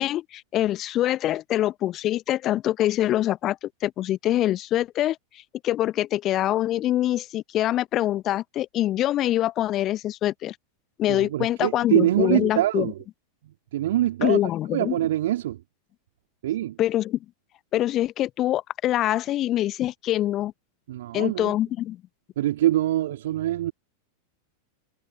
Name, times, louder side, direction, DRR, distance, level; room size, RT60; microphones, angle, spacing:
voice 1, 0.0-5.2 5.6-10.5 11.0-12.9 14.2-14.9 16.8-17.2 17.7-20.5 21.1-22.0, left 13 dB, 35° left, 1.2 m, -24 dB
voice 2, 11.1-13.0 13.4-14.4 14.7-15.6 16.4-16.8 20.9-21.5 22.4-23.7, right 13 dB, 55° right, 3.7 m, -24 dB
figure-of-eight pair, 90°, 0 cm